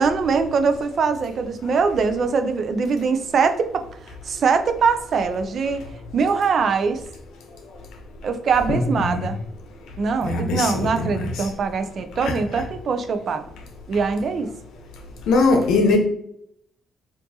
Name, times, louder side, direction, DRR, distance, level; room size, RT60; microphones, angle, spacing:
voice 1, 0.0-7.0 8.2-9.4 10.0-13.4 13.9-14.5, right 5 dB, 55° right, 9 dB, 0.4 m, -22 dB
voice 2, 8.7-9.3 10.2-11.3 12.2-12.3 15.3-16.0, left 3 dB, 85° left, 3 dB, 0.8 m, -21 dB
4.5 x 2.6 x 2.8 m, 0.72 s
cardioid pair, 90°, 0 cm